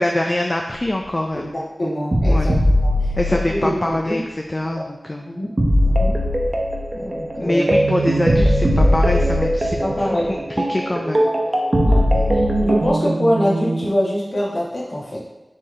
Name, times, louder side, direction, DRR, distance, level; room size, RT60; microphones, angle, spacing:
voice 1, 0.0-1.5 1.8-1.9 2.3-2.5 3.2-4.2 4.5-5.3 7.4-9.8 10.1-11.3 12.1-12.3, left 1 dB, 35° left, 2 dB, 0.4 m, -24 dB
voice 2, 1.3-4.2 4.6-4.8 5.3-5.5 5.8-6.1 6.9-7.7 9.8-10.3 11.2-11.3 11.8-12.0 12.3-15.3, equal, 60° left, -5 dB, 1.4 m, -24 dB
sound 1, 2.1-3.9 5.6-12.9, equal, 40° right, 0.7 m, -19 dB
sound 2, 3.6-4.3 7.7-10.8 11.3-13.9, right 3 dB, 75° right, 0.3 m, -26 dB
4.3 x 3.1 x 3.6 m, 1.0 s
wide cardioid pair, 55°, 0 cm